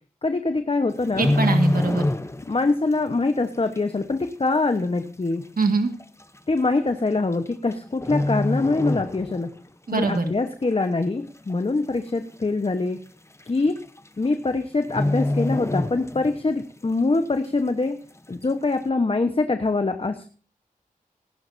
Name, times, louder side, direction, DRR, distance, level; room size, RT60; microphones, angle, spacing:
voice 1, 0.2-1.3 2.5-5.4 6.5-9.5 9.9-13.0 13.5-13.7 14.2-18.0 18.3-20.3, left 3 dB, 40° left, 8 dB, 1.1 m, -24 dB
sound 1, 0.9-2.7 2.9-3.2 3.8-3.9 4.7-4.8 5.1-5.2 6.0-6.2 7.3-7.7 8.0-9.6 9.9-10.1 10.6-11.2 11.5-11.6 11.8-11.9 12.3-12.4 13.4-13.5 13.8-14.1 14.3-14.5 14.8-16.5 16.9-17.0, left 1 dB, 20° left, 0.8 m, -25 dB
voice 2, 1.2-2.0 5.6-5.9 9.9-10.3, right 3 dB, 75° right, 5 dB, 1.8 m, -22 dB
18.5 x 11.5 x 2.7 m, 0.41 s
wide cardioid pair, 70°, 15 cm